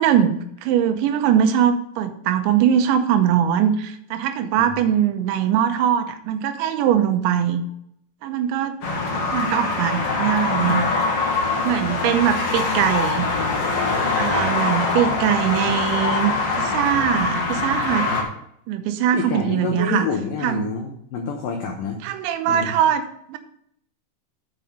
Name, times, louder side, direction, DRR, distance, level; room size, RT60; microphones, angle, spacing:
voice 1, 0.0-7.6 8.2-8.8 9.3-10.9 11.6-13.3 14.2-16.3 16.6-18.1 18.7-20.1 20.4-20.7 22.0-23.4, right 9 dB, 80° right, 8 dB, 3.1 m, -21 dB
sound 1, 8.8-18.2, left 3 dB, 55° left, 1.7 m, -23 dB
voice 2, 19.1-22.0 22.5-22.8, left 5 dB, 85° left, 2 dB, 1.9 m, -28 dB
7.7 x 5.4 x 6.5 m, 0.70 s
omnidirectional pair, 5.3 m